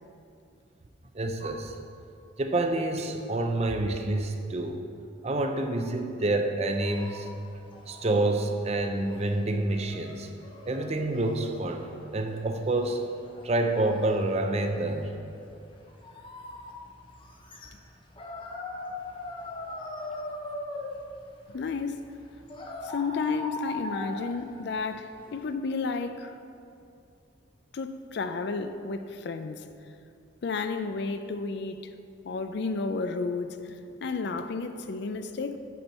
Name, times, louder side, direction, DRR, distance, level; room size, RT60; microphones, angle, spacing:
voice 1, 1.1-1.7 2.4-4.8 5.2-7.3 7.9-10.3 10.7-13.0 13.4-15.2, right 2 dB, 30° right, 0.5 m, -28 dB
sound 1, 6.6-25.5, left 2 dB, 25° left, 0.7 m, -42 dB
voice 2, 21.5-22.1 22.8-26.4 27.7-29.7 30.4-31.9 32.2-35.6, left 4 dB, 55° left, 0.4 m, -32 dB
8.2 x 4.4 x 6.8 m
head